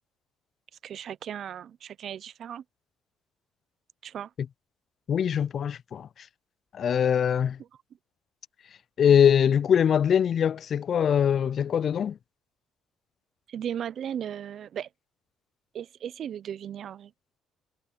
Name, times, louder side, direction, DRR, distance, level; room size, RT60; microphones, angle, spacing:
voice 1, 0.8-2.6 4.0-4.3 13.5-14.9 15.7-17.1, right 9 dB, 60° right, 0.6 m, -36 dB
voice 2, 5.1-6.3 6.7-7.6 9.0-12.2, left 8 dB, 55° left, 0.3 m, -23 dB
supercardioid pair, 80°, 0 cm